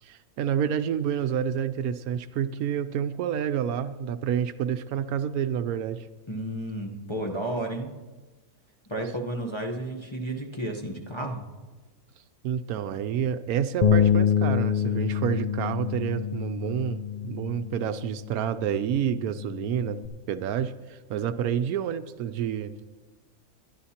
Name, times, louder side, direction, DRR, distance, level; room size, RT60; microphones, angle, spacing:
voice 1, 0.0-6.1 12.4-20.0 20.3-22.9, right 9 dB, 75° right, 11 dB, 1.0 m, -29 dB
voice 2, 6.3-7.9 8.9-11.4, right 1 dB, 20° left, 0 dB, 0.8 m, -32 dB
Bass guitar, 13.8-20.1, left 8 dB, 75° left, 0.3 m, -27 dB
22.0 x 11.5 x 2.9 m, 1.3 s
omnidirectional pair, 1.6 m